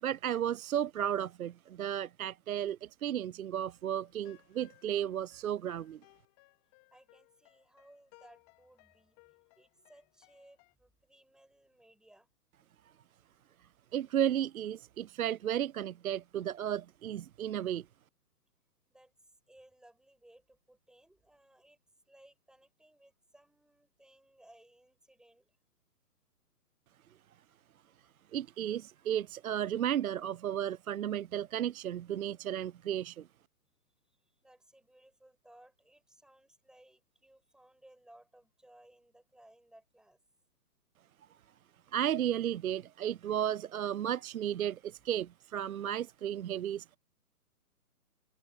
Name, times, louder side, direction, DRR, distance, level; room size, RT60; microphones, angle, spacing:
voice 1, 0.0-6.0 13.9-17.8 28.3-33.2 41.9-46.8, right 10 dB, 60° right, 0.5 m, -34 dB
sound 1, 3.8-10.7, left 29 dB, 25° left, 2.7 m, -64 dB
voice 2, 6.9-12.3 18.9-21.8 22.1-25.6 34.1-40.2, right 1 dB, ahead, 7.2 m, -62 dB
open air
figure-of-eight pair, 140°, 47 cm